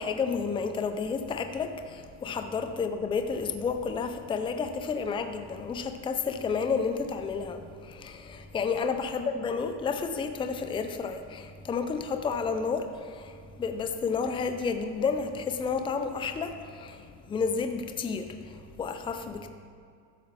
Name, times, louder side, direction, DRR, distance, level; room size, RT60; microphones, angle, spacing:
voice 1, 0.0-19.5, left 5 dB, 10° left, 7 dB, 0.5 m, -31 dB
12.5 x 7.4 x 4.1 m, 2.3 s
supercardioid pair, 120°, 44 cm